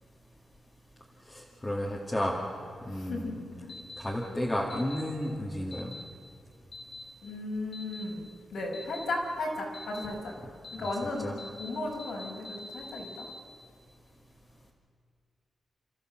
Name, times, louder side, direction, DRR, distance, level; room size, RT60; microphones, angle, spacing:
voice 1, 1.3-2.4 2.9-3.4 4.0-5.9 11.2-11.3, left 1 dB, 15° left, -4 dB, 2.2 m, -32 dB
voice 2, 2.9-3.3 3.6-3.7 7.2-10.3 10.7-13.3, left 2 dB, 70° left, -2 dB, 5.4 m, -35 dB
sound 1, 3.7-4.0 4.7-5.0 5.7-6.0 6.7-7.0 7.7-8.0 8.7-9.0 9.7-10.1 10.6-11.0 11.4-11.7 12.0-13.4, left 2 dB, 45° left, 2.3 m, -44 dB
29.5 x 14.0 x 7.7 m, 2.3 s
wide cardioid pair, 145°, 0 cm